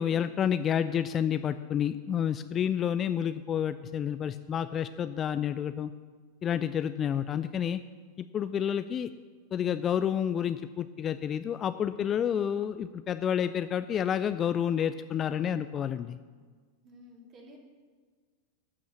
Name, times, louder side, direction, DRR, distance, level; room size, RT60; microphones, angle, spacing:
voice 1, 0.0-5.9 6.4-7.8 8.2-9.1 9.5-16.2, left 9 dB, 25° left, 12 dB, 0.4 m, -29 dB
voice 2, 16.8-17.6, left 1 dB, 30° right, 0 dB, 2.8 m, -52 dB
12.5 x 6.2 x 7.6 m, 1.5 s
figure-of-eight pair, 90°, 0 cm